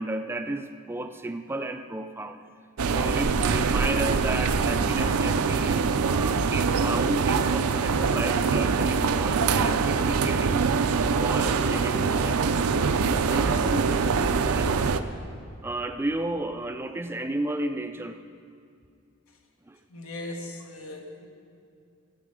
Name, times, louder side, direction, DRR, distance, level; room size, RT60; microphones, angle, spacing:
voice 1, 0.0-2.4 2.9-10.7 11.1-14.9 15.6-18.2 19.7-19.8, right 2 dB, 10° right, 8 dB, 0.3 m, -33 dB
sound 1, 2.8-15.0, right 5 dB, 85° right, 0.5 m, -24 dB
voice 2, 19.9-21.3, left 2 dB, 75° left, 2 dB, 1.3 m, -38 dB
16.0 x 8.3 x 5.0 m, 2.4 s
head